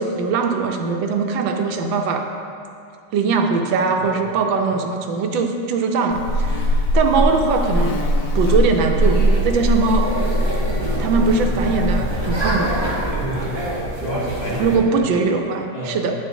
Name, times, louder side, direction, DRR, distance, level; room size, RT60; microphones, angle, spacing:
voice 1, 0.0-2.2 3.1-8.0 8.3-10.1 11.0-12.7 14.6-16.1, right 4 dB, 85° right, 4 dB, 1.3 m, -21 dB
Buzz, 6.1-12.3, equal, 80° left, 1.4 m, -21 dB
sound 1, 9.0-14.8, right 1 dB, 25° right, 0.6 m, -26 dB
voice 2, 13.1-13.6 14.0-15.0 15.7-16.0, equal, 30° left, -8 dB, 1.4 m, -29 dB
9.8 x 5.9 x 2.6 m, 2.5 s
omnidirectional pair, 2.1 m